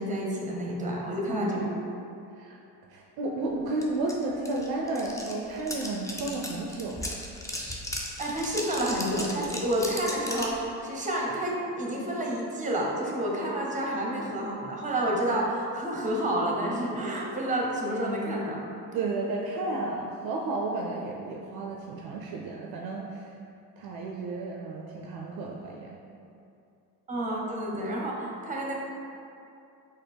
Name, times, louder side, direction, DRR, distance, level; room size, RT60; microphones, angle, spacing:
voice 1, 0.0-1.7 8.2-18.6 27.1-28.7, right 1 dB, 15° right, -2 dB, 0.8 m, -29 dB
voice 2, 1.3-1.8 2.4-2.6 2.9-7.1 18.9-23.3 23.8-26.0, right 2 dB, 55° right, -1 dB, 0.5 m, -32 dB
sound 1, 3.8-3.9 4.1-10.6, left 1 dB, 5° left, 0.4 m, -36 dB
4.0 x 2.5 x 3.4 m, 2.6 s
hypercardioid pair, 65°, 46 cm